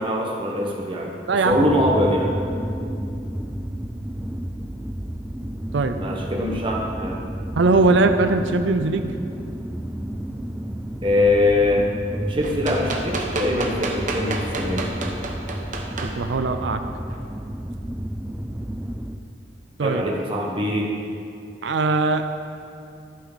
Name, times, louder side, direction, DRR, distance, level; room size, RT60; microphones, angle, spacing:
voice 1, 0.0-1.1 1.4-2.3 6.0-7.2 11.0-14.9 19.8-20.9, left 1 dB, 30° right, -2 dB, 1.4 m, -23 dB
sound 1, 1.5-19.2, right 1 dB, 5° right, 0.4 m, -31 dB
voice 2, 7.6-9.1 16.1-16.8 19.8-20.0 21.6-22.4, right 3 dB, 70° right, 8 dB, 0.5 m, -20 dB
sound 2, 12.4-16.1 17.1-17.2, right 3 dB, 45° right, 1.0 m, -29 dB
11.5 x 9.4 x 4.1 m, 2.5 s
head